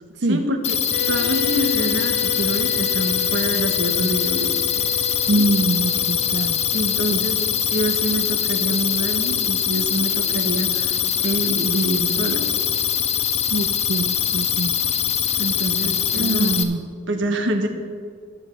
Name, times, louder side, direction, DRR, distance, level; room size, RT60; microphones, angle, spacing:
voice 1, 0.3-0.8 1.1-4.6 5.3-5.5 6.7-7.4 7.7-12.4 15.4-16.6 17.1-17.7, right 1 dB, 75° right, 5 dB, 1.3 m, -26 dB
sound 1, 0.6-16.6, left 9 dB, 35° left, 0.7 m, -22 dB
sound 2, 0.9-9.0, left 6 dB, 60° left, 1.2 m, -33 dB
voice 2, 5.3-6.6 7.1-7.2 13.5-14.7 16.2-16.8, right 2 dB, 55° right, 4 dB, 0.5 m, -23 dB
12.0 x 5.5 x 7.7 m, 2.1 s
head